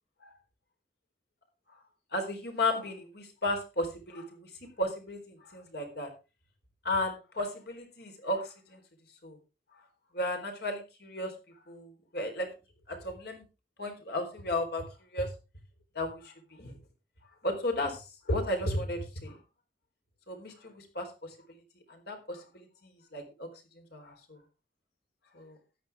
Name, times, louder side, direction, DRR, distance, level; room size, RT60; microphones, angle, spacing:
voice 1, 2.1-4.5 4.8-6.1 6.8-8.8 9.2-9.4 9.7-9.8 10.1-11.3 11.7-12.5 12.9-13.4 13.8-14.9 15.1-15.3 15.9-16.8 17.4-19.4 20.3-21.3 21.9-23.5 23.7-24.4 25.3-25.6, left 1 dB, 65° left, 4 dB, 4.1 m, -34 dB
13.5 x 10.0 x 3.6 m, 0.30 s
head